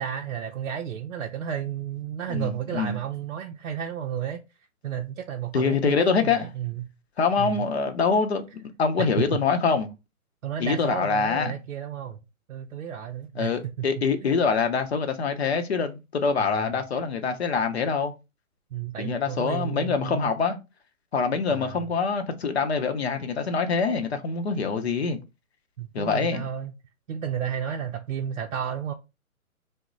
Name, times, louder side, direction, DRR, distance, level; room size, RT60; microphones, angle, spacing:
voice 1, 0.0-4.4 4.8-6.8 7.4-7.6 10.4-12.2 12.5-13.5 13.8-14.4 16.4-16.8 18.7-20.3 21.5-21.9 25.8-26.7 27.1-28.9, right 9 dB, 60° right, 0.5 m, -32 dB
voice 2, 2.3-3.0 5.5-6.5 7.2-9.9 10.6-11.5 13.4-18.1 19.0-20.6 21.1-25.2 25.9-26.5, left 5 dB, 50° left, 0.7 m, -25 dB
2.9 x 2.1 x 3.7 m
hypercardioid pair, 160°, 43 cm